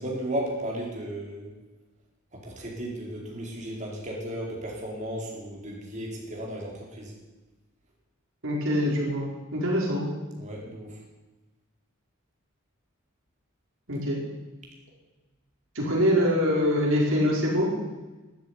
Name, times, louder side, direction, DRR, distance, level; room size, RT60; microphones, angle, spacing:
voice 1, 0.0-1.5 2.3-7.1 10.4-11.0, right 1 dB, 35° right, -2 dB, 4.6 m, -34 dB
voice 2, 8.4-10.0 13.9-14.2 15.7-17.7, equal, 65° right, -3 dB, 4.9 m, -24 dB
13.0 x 10.5 x 9.8 m, 1.1 s
head